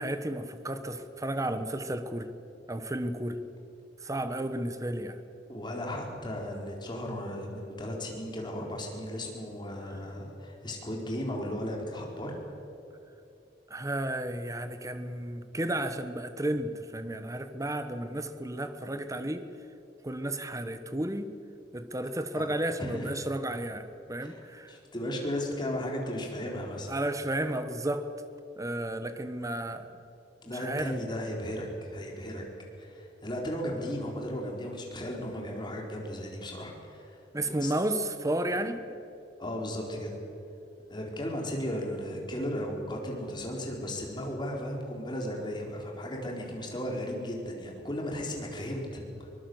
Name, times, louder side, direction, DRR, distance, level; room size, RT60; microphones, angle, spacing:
voice 1, 0.0-2.3 2.7-3.4 4.0-5.2 13.7-19.5 20.0-21.3 21.7-24.7 26.9-28.1 28.6-29.9 30.6-31.0 37.3-38.8, right 1 dB, 20° right, 9 dB, 1.2 m, -32 dB
voice 2, 5.5-12.4 22.3-22.5 22.8-23.1 24.2-26.9 30.4-32.4 32.8-37.7 39.4-40.1 40.9-49.3, equal, 25° left, 0 dB, 4.2 m, -35 dB
24.0 x 19.5 x 8.0 m, 2.8 s
head